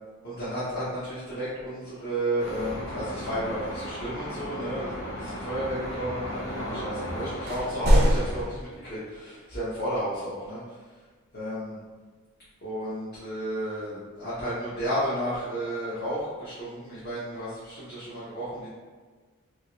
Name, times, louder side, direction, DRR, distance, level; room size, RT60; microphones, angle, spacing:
voice 1, 0.2-10.8 11.3-11.8 12.6-18.7, right 1 dB, 50° left, -11 dB, 0.8 m, -32 dB
sound 1, 2.4-7.7, equal, 85° left, 0.9 m, -35 dB
sound 2, 7.5-8.6, equal, 45° right, 0.4 m, -22 dB
2.9 x 2.8 x 2.9 m, 1.4 s
head